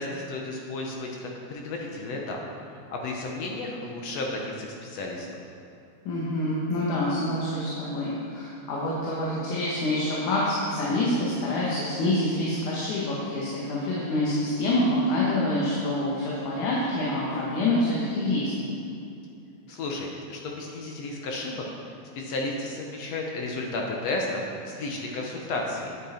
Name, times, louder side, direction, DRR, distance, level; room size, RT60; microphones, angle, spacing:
voice 1, 0.0-2.4 2.7-5.4 19.7-21.7 22.2-26.1, left 2 dB, 70° left, 0 dB, 1.9 m, -33 dB
voice 2, 6.1-18.5, left 1 dB, 85° left, -6 dB, 2.8 m, -26 dB
9.3 x 9.1 x 4.4 m, 2.7 s
omnidirectional pair, 3.4 m